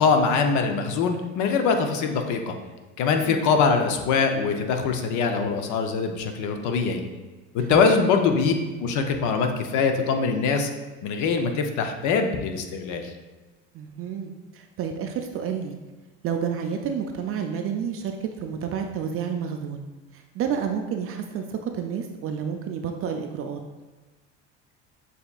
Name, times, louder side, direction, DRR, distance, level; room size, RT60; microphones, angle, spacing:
voice 1, 0.0-2.5 3.0-7.0 7.5-8.5 8.8-10.7 11.0-13.1, left 5 dB, 60° left, 5 dB, 0.7 m, -23 dB
voice 2, 7.6-7.9 13.7-15.7 16.2-19.9 20.1-23.6, right 7 dB, 45° right, 4 dB, 0.4 m, -30 dB
6.6 x 2.8 x 2.4 m, 1.2 s
supercardioid pair, 90°, 33 cm